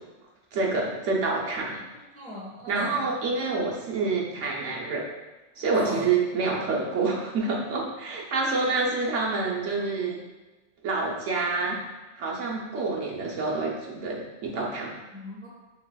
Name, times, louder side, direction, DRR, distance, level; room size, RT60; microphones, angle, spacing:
voice 1, 0.5-1.8 2.7-5.1 5.6-10.2 10.8-11.8 12.2-14.9, right 3 dB, 70° right, -2 dB, 1.0 m, -27 dB
voice 2, 2.1-3.1 5.7-6.1 15.1-15.5, left 1 dB, 5° left, -6 dB, 0.8 m, -36 dB
6.2 x 3.3 x 2.2 m, 1.2 s
omnidirectional pair, 1.3 m